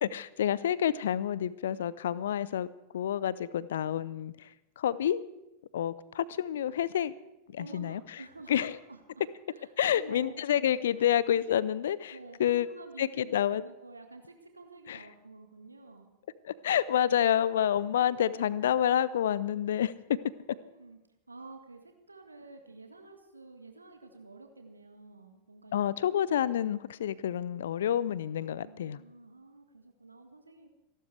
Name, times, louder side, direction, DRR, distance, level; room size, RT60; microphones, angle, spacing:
voice 1, 0.0-2.7 2.9-4.3 4.8-5.2 5.7-7.1 7.5-8.0 8.5-8.7 9.8-12.1 12.4-12.7 13.0-13.6 14.9-15.0 16.4-19.9 25.7-29.0, left 10 dB, 60° left, 20 dB, 0.5 m, -28 dB
voice 2, 7.6-10.4 10.7-11.0 12.1-16.1 20.1-21.0 21.3-25.7 26.1-26.2 27.1-27.2 28.5-30.7, right 3 dB, 80° right, 5 dB, 1.9 m, -50 dB
27.5 x 12.0 x 3.4 m, 0.93 s
figure-of-eight pair, 90°, 0 cm